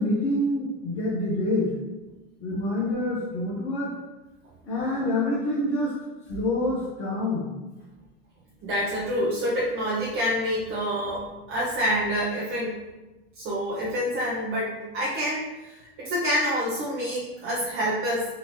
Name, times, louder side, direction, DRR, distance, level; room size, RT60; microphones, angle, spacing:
voice 1, 0.0-1.7 2.4-3.9 4.6-5.9 6.3-7.5, left 1 dB, 55° left, -6 dB, 1.1 m, -26 dB
voice 2, 8.6-12.7 13.4-18.3, equal, 40° right, -6 dB, 0.9 m, -27 dB
4.0 x 2.9 x 3.0 m, 1.1 s
supercardioid pair, 105°, 32 cm